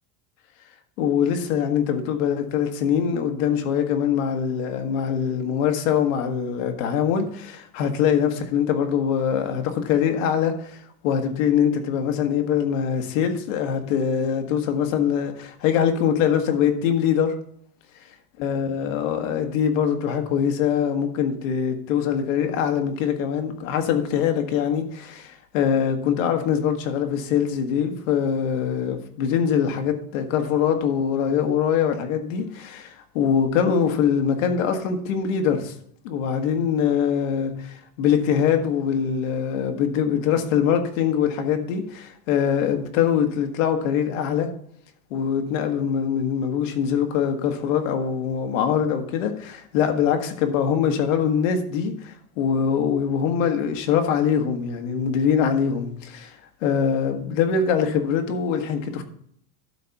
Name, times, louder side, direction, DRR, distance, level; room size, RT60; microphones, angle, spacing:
voice 1, 1.0-17.3 18.4-32.8 33.2-35.8 36.0-44.5 45.1-59.0, left 8 dB, 60° left, 1.6 m, -23 dB
12.5 x 4.2 x 5.9 m
supercardioid pair, 175°, 44 cm